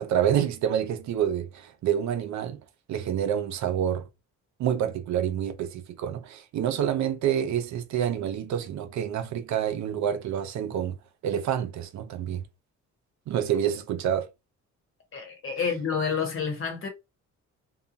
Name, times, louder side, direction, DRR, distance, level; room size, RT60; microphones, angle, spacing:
voice 1, 0.0-2.6 2.9-4.1 4.6-11.0 11.2-12.4 13.3-14.3, right 9 dB, 65° right, 0.5 m, -27 dB
voice 2, 15.1-16.9, left 6 dB, 45° left, 1.2 m, -29 dB
2.8 x 2.3 x 2.6 m
cardioid pair, 90°, 30 cm